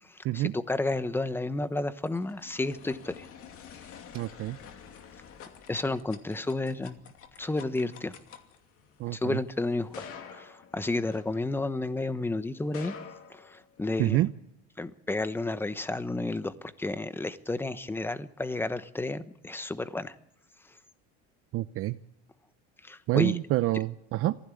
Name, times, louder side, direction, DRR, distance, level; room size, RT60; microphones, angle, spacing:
voice 1, 0.0-3.3 5.7-7.0 7.4-8.1 9.1-12.9 13.3-14.2 14.8-20.1 22.8-23.4, left 2 dB, 5° left, 13 dB, 1.1 m, -31 dB
sound 1, 1.6-12.0 12.6-14.1, left 7 dB, 50° left, 2.5 m, -49 dB
voice 2, 4.1-4.6 9.0-9.4 14.0-14.3 21.5-22.0 23.1-24.4, right 16 dB, 50° right, 12 dB, 0.8 m, -27 dB
22.5 x 16.0 x 8.5 m, 0.80 s
supercardioid pair, 120°, 30 cm